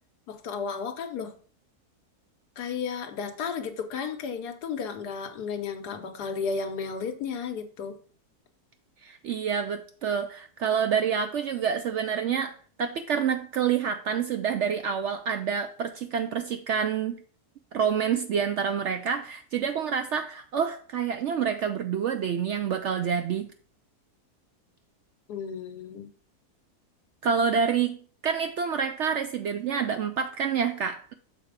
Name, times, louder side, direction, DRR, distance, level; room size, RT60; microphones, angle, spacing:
voice 1, 0.3-1.4 2.6-8.0 25.3-26.1, left 6 dB, 85° left, 1.5 m, -33 dB
voice 2, 9.0-12.5 12.8-17.2 17.7-23.5 27.2-28.0 28.2-31.1, right 7 dB, 65° right, 0.7 m, -27 dB
6.5 x 4.3 x 5.0 m
omnidirectional pair, 1.7 m